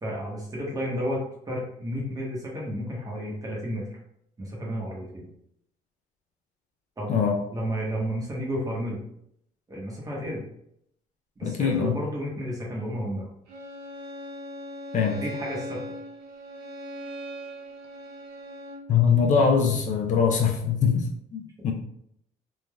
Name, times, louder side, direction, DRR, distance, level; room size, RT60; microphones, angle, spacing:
voice 1, 0.0-3.8 4.4-5.3 7.0-7.2 7.5-9.0 9.7-10.5 11.4-13.3 15.1-15.8, equal, 20° right, -4 dB, 0.8 m, -32 dB
voice 2, 11.4-12.0 14.9-15.2 18.9-21.7, left 6 dB, 45° left, 1 dB, 0.5 m, -23 dB
Bowed string instrument, 13.5-18.9, equal, 65° right, 0.7 m, -39 dB
3.3 x 2.2 x 2.2 m, 0.73 s
cardioid pair, 110°, 17 cm